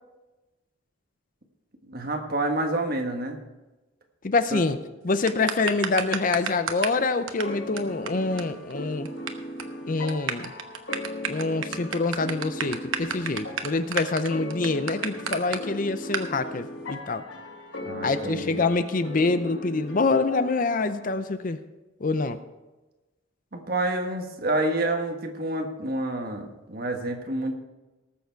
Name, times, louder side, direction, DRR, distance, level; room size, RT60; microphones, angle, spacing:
voice 1, 1.9-3.4 4.5-4.6 17.9-18.7 23.5-27.6, right 2 dB, 45° right, 3 dB, 1.4 m, -28 dB
voice 2, 4.2-4.8 5.0-9.1 9.9-10.5 11.3-17.3 18.0-21.6 22.0-22.4, left 3 dB, 40° left, 11 dB, 0.5 m, -26 dB
sound 1, 5.3-7.0 7.3-7.4 7.8-7.9 8.1-8.2 8.4-8.5 8.7-9.3 9.6-9.8 10.1-15.6 16.1-16.3, right 7 dB, 75° right, 1.0 m, -30 dB
sound 2, 7.4-21.2, left 1 dB, 60° left, 1.6 m, -38 dB
19.0 x 7.0 x 4.6 m, 1.1 s
head